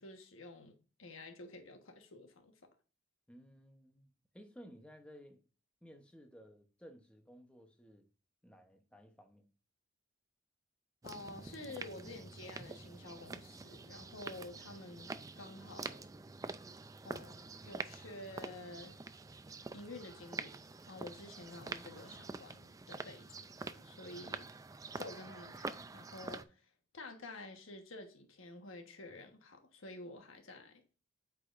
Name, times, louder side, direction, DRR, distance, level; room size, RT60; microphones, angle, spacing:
voice 1, 0.0-2.5 11.0-16.1 17.0-19.0 19.7-24.5 24.9-30.8, left 2 dB, 90° left, 1.3 m, -50 dB
voice 2, 3.3-4.1 4.3-5.4 5.8-8.1 8.4-9.5, equal, 5° left, 0.8 m, -56 dB
sound 1, 11.0-26.4, right 3 dB, 15° right, 0.3 m, -46 dB
8.3 x 4.8 x 2.5 m
head